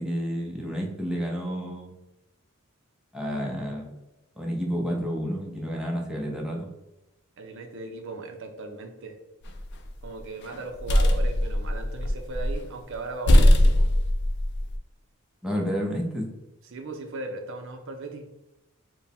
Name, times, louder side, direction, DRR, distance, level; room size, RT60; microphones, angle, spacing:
voice 1, 0.0-1.9 3.1-3.9 4.4-6.7 15.4-16.3, equal, 5° right, -2 dB, 0.6 m, -30 dB
voice 2, 7.4-9.2 10.0-13.9 16.7-18.3, right 3 dB, 60° right, 5 dB, 0.5 m, -37 dB
sound 1, 9.4-10.0 10.5-12.6 12.9-13.0 13.3-14.8, left 1 dB, 55° left, 0.4 m, -20 dB
4.4 x 2.1 x 3.4 m, 0.95 s
head